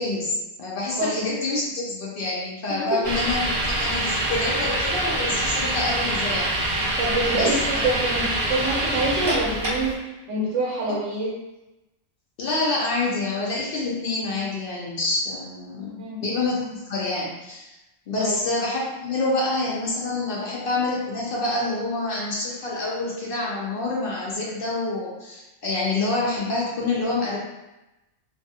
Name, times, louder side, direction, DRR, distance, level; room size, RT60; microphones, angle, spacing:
voice 1, 0.0-6.9 7.3-7.8 12.4-17.7 18.1-27.4, left 2 dB, 60° left, -4 dB, 0.6 m, -27 dB
sound 1, 3.0-9.9, right 1 dB, 25° right, 0.8 m, -25 dB
voice 2, 7.0-7.6 7.8-10.0 10.3-11.3 15.8-16.2 18.1-18.4, right 2 dB, 75° right, -4 dB, 0.9 m, -26 dB
2.4 x 2.3 x 2.6 m, 1.0 s
omnidirectional pair, 1.3 m